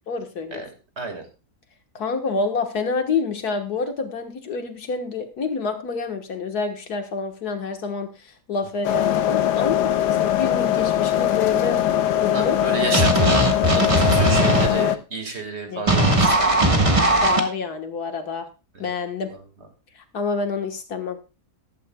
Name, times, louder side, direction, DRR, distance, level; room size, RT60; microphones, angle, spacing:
voice 1, 0.1-0.6 2.0-11.8 12.1-12.6 15.7-16.0 17.2-18.5 18.8-19.3 20.1-21.2, left 4 dB, 70° left, 6 dB, 1.9 m, -28 dB
sound 1, 8.8-15.0, left 11 dB, 90° left, 1.3 m, -21 dB
voice 2, 12.3-13.4 13.8-16.9 18.7-18.9, right 3 dB, 40° right, 5 dB, 2.1 m, -30 dB
sound 2, 12.9-14.7 15.9-17.4, right 1 dB, 20° right, 1.4 m, -18 dB
15.0 x 12.0 x 2.3 m, 0.30 s
omnidirectional pair, 1.7 m